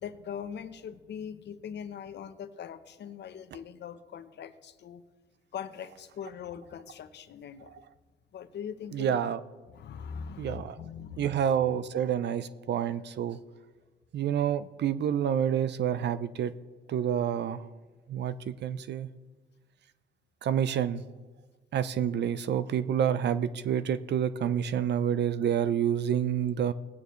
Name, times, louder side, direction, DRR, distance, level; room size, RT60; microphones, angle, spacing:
voice 1, 0.0-5.0 5.5-7.8 8.3-9.2 9.7-11.5, left 7 dB, 60° left, 11 dB, 0.9 m, -41 dB
voice 2, 8.9-9.4 10.4-10.7 11.2-13.4 14.1-16.5 16.9-17.6 18.1-19.1 20.4-21.0 21.7-26.7, right 9 dB, 60° right, 14 dB, 0.6 m, -28 dB
19.0 x 9.2 x 3.2 m, 1.3 s
cardioid pair, 90°, 20 cm